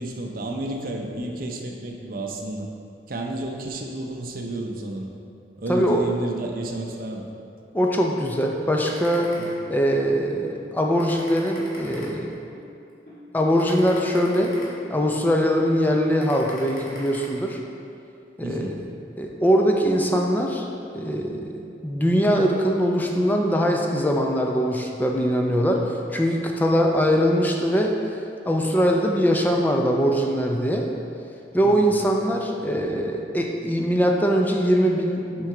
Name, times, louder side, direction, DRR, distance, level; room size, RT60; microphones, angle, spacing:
voice 1, 0.0-2.7 3.1-5.1 5.6-7.3 18.4-18.7 31.6-31.9, right 2 dB, 55° right, 1 dB, 0.6 m, -31 dB
voice 2, 5.7-6.1 7.7-9.4 9.7-12.3 13.3-14.6 14.9-17.6 18.4-18.8 19.2-20.7 20.9-28.0 28.5-30.9 31.5-35.5, equal, 10° left, 1 dB, 0.4 m, -22 dB
sound 1, 8.9-10.0 10.5-10.6 11.0-12.6 13.1-13.2 13.6-15.2 15.7-15.8 16.2-17.3, equal, 55° left, 1.4 m, -42 dB
6.0 x 4.5 x 3.8 m, 2.5 s
head